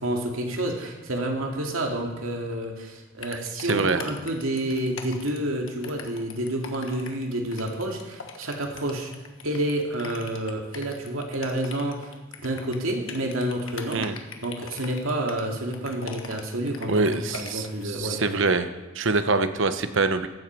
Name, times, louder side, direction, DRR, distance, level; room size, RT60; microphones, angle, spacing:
voice 1, 0.0-9.1 9.4-12.1 12.4-14.1 14.4-17.0 17.3-18.2, right 1 dB, 85° right, 2 dB, 2.3 m, -29 dB
sound 1, 3.2-17.8, left 5 dB, 75° left, 1.5 m, -41 dB
voice 2, 3.3-4.0 13.9-14.2 16.9-18.7 18.9-20.3, right 3 dB, 65° right, 10 dB, 1.0 m, -25 dB
15.5 x 12.5 x 4.6 m, 1.1 s
head